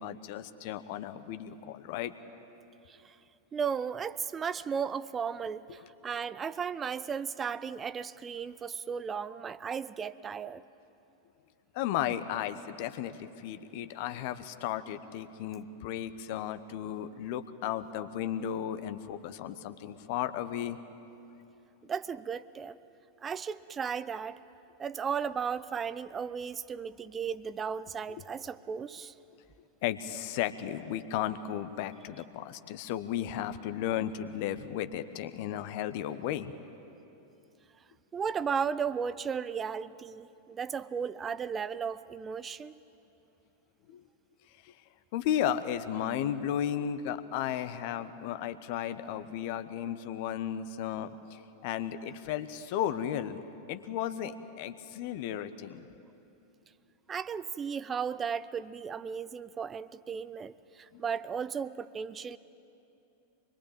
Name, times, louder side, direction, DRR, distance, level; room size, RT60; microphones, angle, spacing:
voice 1, 0.0-2.1 11.7-20.8 29.8-36.5 43.9-44.0 44.6-44.7 45.1-53.4 53.7-55.8 60.9-61.0, left 10 dB, 50° left, 11 dB, 1.1 m, -34 dB
voice 2, 3.5-10.6 21.8-22.8 23.2-24.4 24.8-29.1 38.1-42.7 57.1-62.4, right 6 dB, 20° right, 16 dB, 0.6 m, -35 dB
25.5 x 22.0 x 8.8 m, 2.8 s
figure-of-eight pair, 90°, 0 cm